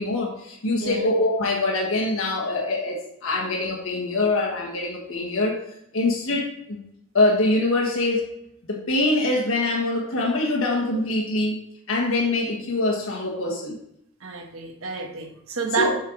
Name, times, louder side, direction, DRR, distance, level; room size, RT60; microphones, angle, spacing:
voice 1, 0.0-5.6 5.9-6.8 7.1-8.4 8.7-11.6 11.9-13.8 15.7-15.9, left 2 dB, 80° left, 1.5 m, -24 dB
voice 2, 0.7-1.1 14.2-15.9, right 4 dB, 85° right, 1.2 m, -29 dB
7.2 x 4.7 x 4.7 m
head